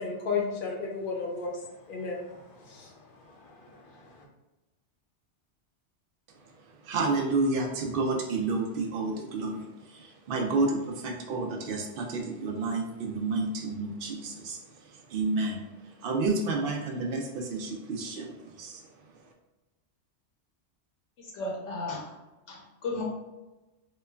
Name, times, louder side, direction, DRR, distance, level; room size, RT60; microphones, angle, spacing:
voice 1, 0.0-4.2, left 4 dB, 60° left, 0 dB, 0.6 m, -35 dB
voice 2, 6.8-9.7 9.9-14.6 14.9-15.6 16.0-18.8, right 3 dB, 60° right, 1 dB, 0.7 m, -30 dB
voice 3, 21.2-22.1 22.5-23.0, left 2 dB, 85° left, -2 dB, 0.9 m, -35 dB
3.1 x 2.2 x 2.2 m, 1.1 s
omnidirectional pair, 1.2 m